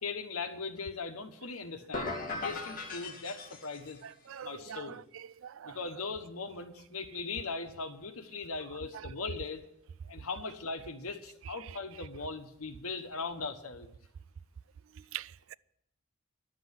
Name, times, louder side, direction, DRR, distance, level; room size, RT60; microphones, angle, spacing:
voice 1, 0.0-4.0 4.4-5.0 5.6-9.6 10.1-13.9, left 4 dB, 90° left, 1.3 m, -39 dB
sound 1, 1.9-4.0, left 3 dB, 40° left, 2.1 m, -38 dB
voice 2, 4.0-5.8 15.1-15.5, right 10 dB, 65° right, 0.4 m, -44 dB
11.0 x 7.8 x 9.4 m
head